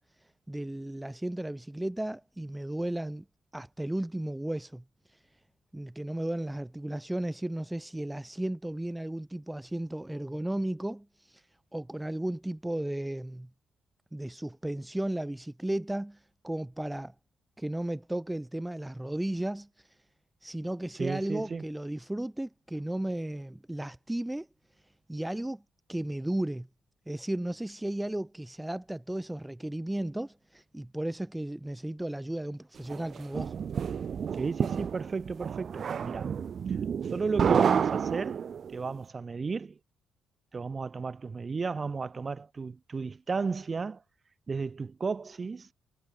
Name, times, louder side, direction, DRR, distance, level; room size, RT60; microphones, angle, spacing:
voice 1, 0.0-3.2 3.5-5.2 5.7-11.5 11.7-13.5 14.1-17.1 17.6-20.0 20.4-24.5 25.1-25.6 25.9-26.7 27.1-33.5, right 1 dB, 10° right, 0.6 m, -34 dB
voice 2, 21.0-21.6 34.4-36.3 37.1-38.4 38.7-39.8 40.5-44.0 44.5-45.7, right 4 dB, 35° right, 1.6 m, -33 dB
sound 1, 32.9-38.8, right 7 dB, 50° right, 0.6 m, -29 dB
cardioid pair, 90°, 0 cm